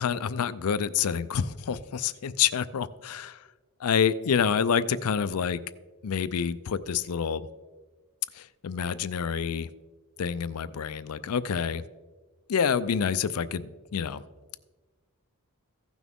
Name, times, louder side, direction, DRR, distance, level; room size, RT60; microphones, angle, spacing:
voice 1, 0.0-3.4 3.8-5.6 6.0-7.5 8.3-9.7 10.2-11.8 12.5-14.2, left 7 dB, 75° left, 15 dB, 0.4 m, -27 dB
15.5 x 6.1 x 3.6 m, 1.3 s
head